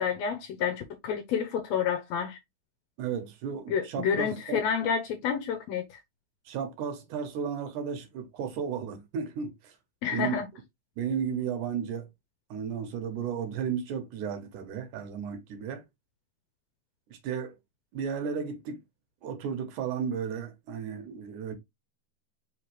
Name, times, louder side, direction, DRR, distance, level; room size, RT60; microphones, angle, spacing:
voice 1, 0.0-2.4 3.7-6.0 10.0-10.4, left 7 dB, 75° left, 1.7 m, -29 dB
voice 2, 3.0-4.6 6.5-9.8 10.1-10.4 11.0-12.1 12.5-15.8 17.1-17.6 17.9-18.8 19.2-21.5, right 7 dB, 80° right, 2.4 m, -34 dB
5.1 x 3.3 x 3.1 m
omnidirectional pair, 3.6 m